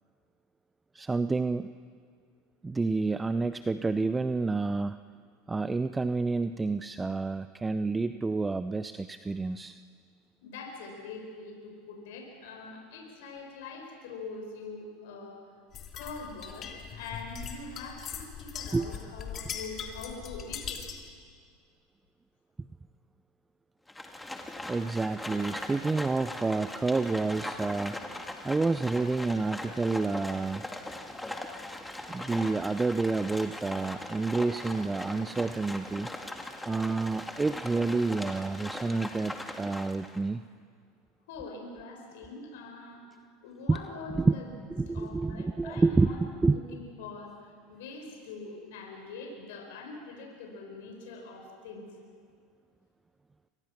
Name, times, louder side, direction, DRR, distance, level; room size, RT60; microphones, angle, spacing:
voice 1, 0.9-1.7 2.6-5.0 5.5-9.8 18.7-18.9 24.7-28.0 28.4-30.7 32.1-36.1 36.7-40.4 43.7-43.8 44.1-44.3 44.7-46.6, right 3 dB, 15° right, 12 dB, 0.7 m, -29 dB
voice 2, 10.4-15.4 15.9-20.8 41.3-43.0 43.4-44.5 44.9-51.9, left 3 dB, 70° left, 2 dB, 5.3 m, -43 dB
sound 1, 15.7-21.1, left 7 dB, 40° left, 3.2 m, -40 dB
Livestock farm animals working animals, 23.9-40.2, left 1 dB, 5° left, 2.3 m, -40 dB
28.5 x 24.5 x 6.1 m, 2.1 s
hypercardioid pair, 85°, 0 cm